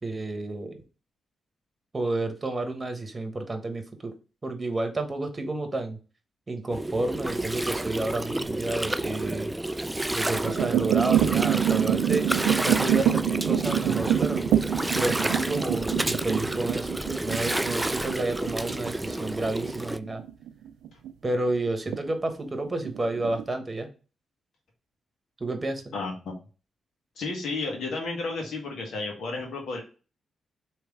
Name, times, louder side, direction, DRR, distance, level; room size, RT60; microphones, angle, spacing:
voice 1, 0.0-0.8 1.9-4.1 4.4-6.0 6.5-9.5 10.1-12.3 12.6-14.5 14.9-16.9 17.2-20.2 21.2-23.9 25.4-25.8, right 2 dB, 30° right, 7 dB, 1.1 m, -30 dB
Gurgling, 6.7-20.0, right 1 dB, 15° right, 0.3 m, -30 dB
sound 1, 7.3-8.3 8.9-9.3 10.1-21.1 21.5-22.0 22.3-22.4 22.8-23.5, right 10 dB, 85° right, 0.4 m, -26 dB
voice 2, 25.9-26.3 27.2-29.8, left 3 dB, 75° left, 0 dB, 1.4 m, -32 dB
3.3 x 3.1 x 4.8 m, 0.35 s
supercardioid pair, 55°, 0 cm